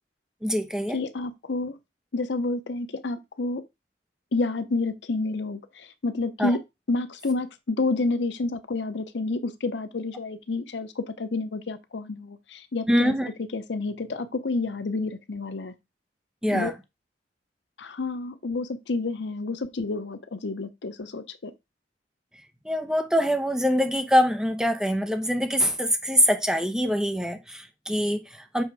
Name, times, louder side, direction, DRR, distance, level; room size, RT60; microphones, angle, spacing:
voice 1, 0.4-1.0 6.4-6.6 12.9-13.3 16.4-16.7 22.6-28.6, equal, 5° right, 0.9 m, -24 dB
voice 2, 0.9-1.8 2.1-3.6 4.3-6.6 6.9-15.7 16.5-16.7 17.8-21.5, left 3 dB, 85° left, 0.7 m, -29 dB
7.0 x 3.3 x 4.7 m
head